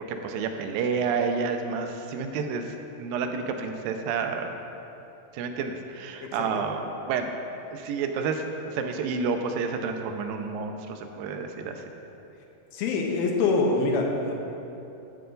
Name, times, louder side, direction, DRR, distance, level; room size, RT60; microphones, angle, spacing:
voice 1, 0.1-4.6 5.3-7.3 7.7-11.8, right 5 dB, 80° right, 5 dB, 2.3 m, -30 dB
voice 2, 12.7-14.3, left 3 dB, 85° left, 1 dB, 2.7 m, -25 dB
9.8 x 6.7 x 3.8 m, 2.9 s
omnidirectional pair, 4.2 m